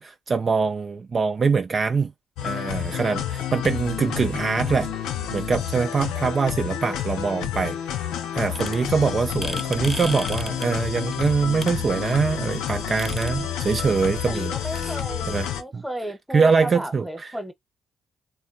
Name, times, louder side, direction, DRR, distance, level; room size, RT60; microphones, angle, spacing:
voice 1, 0.0-2.1 2.4-4.9 5.3-8.0 8.3-14.9 15.3-15.8 16.3-17.3, right 5 dB, 45° right, 0.3 m, -24 dB
sound 1, 2.4-15.6, left 10 dB, 75° left, 0.4 m, -29 dB
sound 2, 8.5-15.0, left 1 dB, 20° left, 0.5 m, -38 dB
voice 2, 14.3-17.5, right 1 dB, 5° right, 0.9 m, -33 dB
3.4 x 2.2 x 2.5 m
hypercardioid pair, 40°, 0 cm